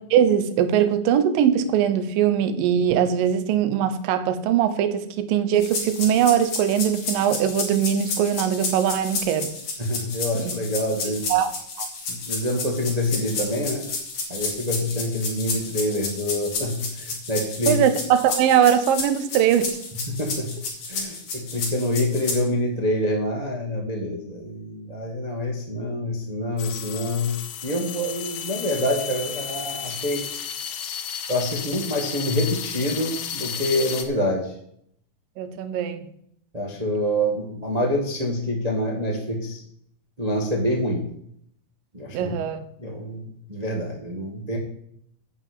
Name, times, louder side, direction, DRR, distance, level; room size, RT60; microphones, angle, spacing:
voice 1, 0.1-9.5 10.4-10.5 11.3-11.5 11.8-11.9 17.7-19.8 35.4-36.0 42.1-42.7, right 9 dB, 75° right, 11 dB, 2.5 m, -21 dB
sound 1, 5.6-22.4, left 4 dB, 50° left, 3.6 m, -31 dB
voice 2, 9.8-11.3 12.1-13.9 14.3-17.8 20.1-20.6 20.9-27.4 27.6-30.3 31.3-34.5 36.5-39.6 40.2-41.1 41.9-42.4 42.8-44.6, left 1 dB, 50° right, 0 dB, 0.4 m, -26 dB
sound 2, 26.6-34.0, left 8 dB, 70° left, 2.1 m, -33 dB
10.5 x 5.8 x 8.4 m, 0.69 s
omnidirectional pair, 4.2 m